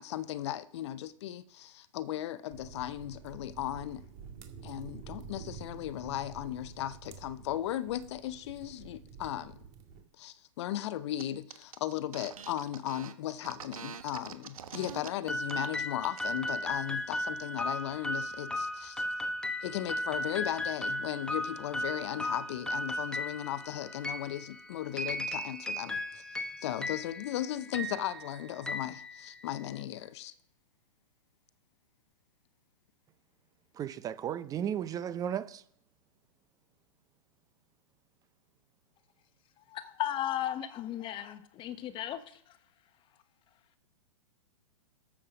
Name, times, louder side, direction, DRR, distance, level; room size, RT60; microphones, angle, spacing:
voice 1, 0.0-4.0 4.6-9.6 10.2-19.1 19.6-26.2 26.6-30.3, left 12 dB, 50° left, 0.7 m, -36 dB
sound 1, 2.5-10.0, right 6 dB, 35° right, 2.0 m, -49 dB
sound 2, 11.2-11.3 11.5-15.1 15.4-15.7 16.0-16.5, right 6 dB, 75° right, 1.3 m, -44 dB
sound 3, 15.3-29.7, left 1 dB, 5° left, 0.9 m, -36 dB
voice 2, 33.8-35.6, right 9 dB, 20° right, 0.5 m, -34 dB
voice 3, 39.7-42.2, left 12 dB, 30° left, 1.1 m, -35 dB
13.0 x 7.4 x 5.0 m
hypercardioid pair, 120°, 18 cm